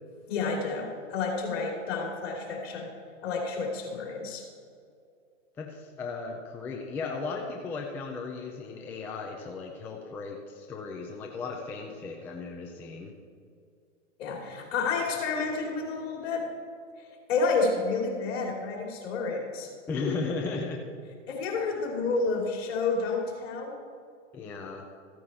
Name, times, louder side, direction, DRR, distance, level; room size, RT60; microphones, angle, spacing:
voice 1, 0.3-2.9 3.2-4.4 14.2-16.5 17.3-19.7 21.3-23.7, left 4 dB, 55° left, 0 dB, 3.1 m, -30 dB
voice 2, 5.6-13.1 19.9-20.9 24.3-24.8, left 4 dB, 5° left, 1 dB, 0.3 m, -36 dB
14.5 x 9.1 x 4.3 m, 2.3 s
hypercardioid pair, 130°, 37 cm